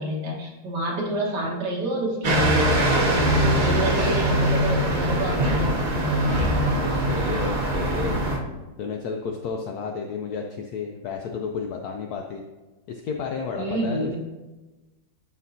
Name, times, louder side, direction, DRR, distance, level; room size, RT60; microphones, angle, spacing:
voice 1, 0.0-2.7 3.6-5.7 13.6-14.2, right 2 dB, 60° right, -3 dB, 2.0 m, -28 dB
sound 1, 2.2-8.4, right 1 dB, 90° right, 0.4 m, -22 dB
voice 2, 3.6-4.2 6.7-8.2 8.8-12.4 12.9-14.2, left 5 dB, 75° left, 3 dB, 0.9 m, -32 dB
10.5 x 4.3 x 2.7 m, 1.1 s
omnidirectional pair, 2.1 m